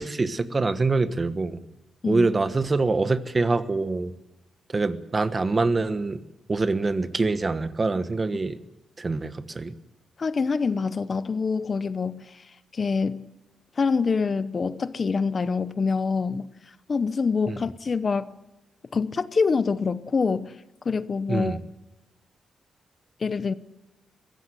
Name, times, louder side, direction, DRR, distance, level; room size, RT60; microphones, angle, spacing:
voice 1, 0.0-1.6 2.1-4.1 4.7-6.2 6.5-8.6 9.0-9.7 17.5-17.6 21.3-21.6, right 3 dB, 30° right, 1.2 m, -25 dB
voice 2, 10.2-12.2 12.7-13.2 13.8-16.5 16.9-18.3 18.9-20.5 20.8-21.6 23.2-23.5, left 5 dB, 40° left, 0.8 m, -25 dB
22.0 x 16.0 x 9.8 m
cardioid pair, 120°, 0 cm